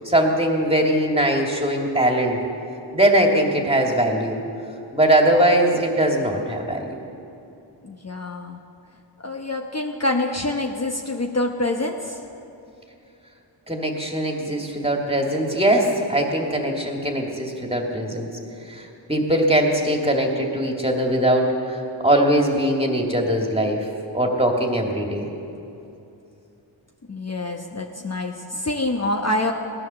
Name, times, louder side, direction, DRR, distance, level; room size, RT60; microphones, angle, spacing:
voice 1, 0.0-2.4 2.9-4.4 4.9-7.0 13.7-18.3 18.7-21.8 22.0-23.9 24.1-25.3, right 1 dB, 10° right, 0 dB, 2.3 m, -21 dB
voice 2, 7.8-8.6 9.2-12.2 27.1-29.5, left 2 dB, 35° left, 2 dB, 1.1 m, -26 dB
18.0 x 11.0 x 6.9 m, 2.7 s
wide cardioid pair, 65°, 46 cm